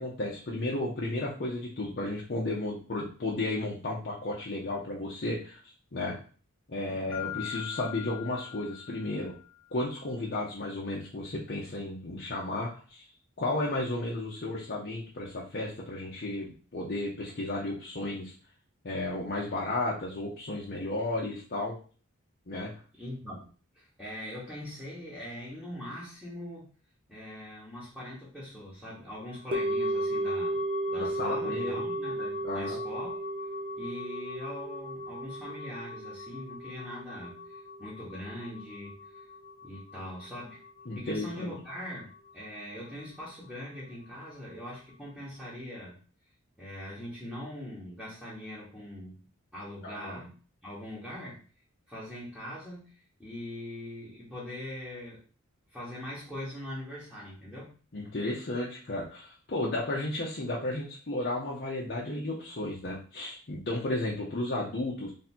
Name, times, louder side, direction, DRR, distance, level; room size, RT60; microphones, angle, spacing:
voice 1, 0.0-5.6 5.9-6.2 6.7-9.3 9.7-13.1 13.4-18.3 18.8-21.8 22.5-22.7 31.0-31.8 32.4-32.8 40.9-41.5 49.8-50.2 57.9-65.1, left 2 dB, 50° left, -4 dB, 0.8 m, -33 dB
Mallet percussion, 7.1-9.7, left 15 dB, 20° left, 1.3 m, -41 dB
voice 2, 22.9-23.5 23.7-26.7 27.1-30.6 30.9-33.2 33.8-39.3 39.6-40.6 40.9-46.0 46.6-49.2 49.5-50.3 50.6-51.4 51.9-55.2 55.7-57.7, left 1 dB, ahead, -10 dB, 1.2 m, -42 dB
sound 1, 29.5-39.8 40.1-40.2, right 1 dB, 25° right, 0.8 m, -34 dB
3.4 x 2.7 x 4.3 m, 0.39 s
head